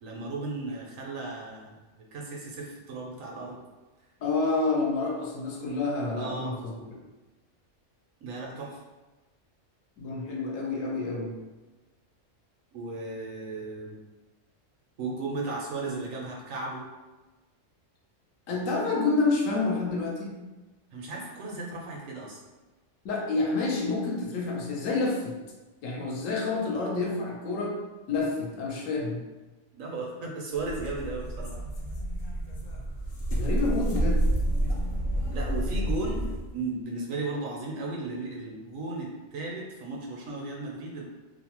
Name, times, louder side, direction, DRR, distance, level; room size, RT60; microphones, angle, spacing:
voice 1, 0.0-3.6 6.2-6.6 8.2-8.8 12.7-14.0 15.0-16.8 20.9-22.4 29.7-31.5 35.3-36.2 36.5-41.0, right 3 dB, 85° right, -2 dB, 1.1 m, -35 dB
voice 2, 4.2-6.8 10.0-11.4 18.5-20.4 23.0-25.4 25.8-27.8 28.1-29.2 33.4-34.3, left 3 dB, 80° left, -1 dB, 1.0 m, -28 dB
sound 1, 30.6-36.5, right 1 dB, 65° left, 0.4 m, -29 dB
2.8 x 2.0 x 2.9 m, 1.2 s
omnidirectional pair, 1.3 m